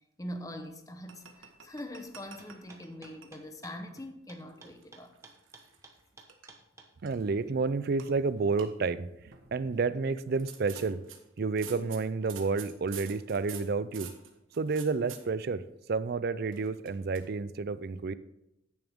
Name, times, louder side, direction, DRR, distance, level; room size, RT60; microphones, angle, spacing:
voice 1, 0.2-5.1, left 1 dB, 15° left, 0.9 m, -43 dB
sound 1, 1.1-3.3 3.7-3.9 4.5-6.0 6.3-6.5 7.1-7.5 8.0-8.1 8.4-8.7 9.3-9.6 10.3-15.2 16.5-17.3, right 8 dB, 85° right, 1.4 m, -48 dB
sound 2, 2.4-6.9, right 3 dB, 15° right, 1.2 m, -53 dB
voice 2, 7.0-11.0 11.4-14.1 14.6-15.6 15.9-18.1, right 4 dB, 50° right, 0.4 m, -30 dB
10.5 x 9.3 x 3.6 m
head